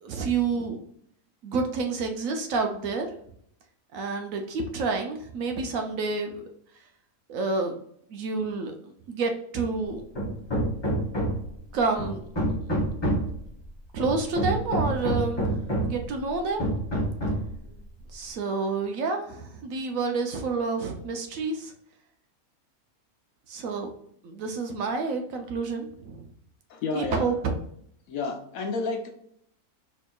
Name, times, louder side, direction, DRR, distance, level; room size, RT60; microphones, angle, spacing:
voice 1, 0.0-0.8 1.4-3.1 3.9-6.4 7.3-7.8 8.1-8.7 9.1-10.0 11.7-12.3 13.9-16.7 18.1-21.7 23.5-23.9 24.2-26.3 26.9-27.5, right 4 dB, 70° right, 4 dB, 1.0 m, -29 dB
Hammer, 10.1-11.5 12.0-13.4 14.0-16.0 16.6-17.5, right 1 dB, 25° left, 0.7 m, -27 dB
voice 2, 26.7-27.3 28.1-29.1, left 3 dB, 70° left, 3 dB, 1.1 m, -30 dB
4.3 x 2.8 x 2.3 m, 0.68 s
omnidirectional pair, 1.6 m